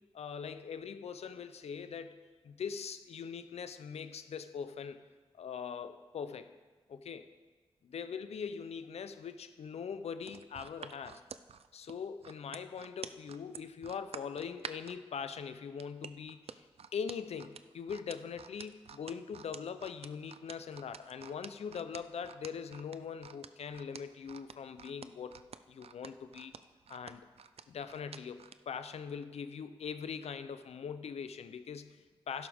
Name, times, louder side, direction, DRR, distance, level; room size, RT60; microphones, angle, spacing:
voice 1, 0.1-2.2 2.4-5.0 5.3-6.5 6.9-7.3 7.8-11.2 11.7-16.7 16.9-25.4 25.7-26.6 26.9-27.3 27.7-32.5, left 6 dB, 90° left, 11 dB, 0.6 m, -42 dB
sound 1, 10.2-15.0 15.8-28.6 29.0-29.2, right 7 dB, 70° right, 0.4 m, -48 dB
12.5 x 11.0 x 3.5 m, 1.3 s
cardioid pair, 55°, 11 cm